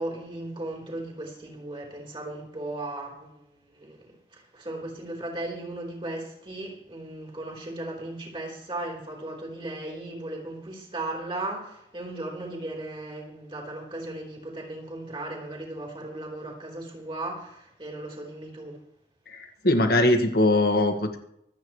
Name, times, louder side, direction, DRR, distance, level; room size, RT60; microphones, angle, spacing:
voice 1, 0.0-18.8, right 2 dB, 30° right, 3.7 m, -36 dB
voice 2, 19.3-21.2, left 1 dB, 60° left, 1.7 m, -22 dB
25.0 x 8.9 x 3.2 m
head